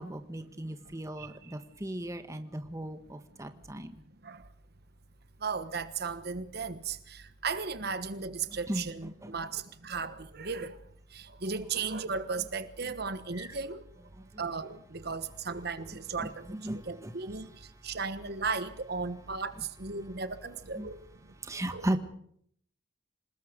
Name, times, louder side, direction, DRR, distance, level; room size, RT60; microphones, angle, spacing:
voice 1, 0.0-3.9 8.7-8.9 9.2-9.3 13.4-13.5 16.2-17.1 20.8-20.9 21.4-22.0, right 1 dB, 15° right, 1.5 m, -36 dB
voice 2, 5.4-10.8 11.1-13.8 14.4-16.6 16.9-17.5 17.8-19.5 19.8-21.0 21.7-21.9, right 4 dB, 60° right, 1.3 m, -35 dB
27.0 x 19.5 x 5.3 m
head